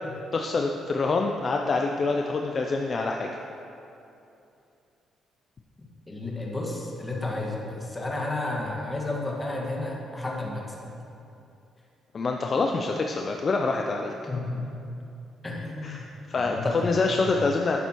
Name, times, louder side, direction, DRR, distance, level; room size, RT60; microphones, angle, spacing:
voice 1, 0.3-3.3 12.1-14.1 15.8-17.8, left 3 dB, 40° left, 2 dB, 0.5 m, -26 dB
voice 2, 6.1-10.9 14.3-14.8 15.4-16.1 16.3-17.4, left 2 dB, 15° left, -2 dB, 1.6 m, -32 dB
11.0 x 7.9 x 3.0 m, 2.7 s
cardioid pair, 90°, 0 cm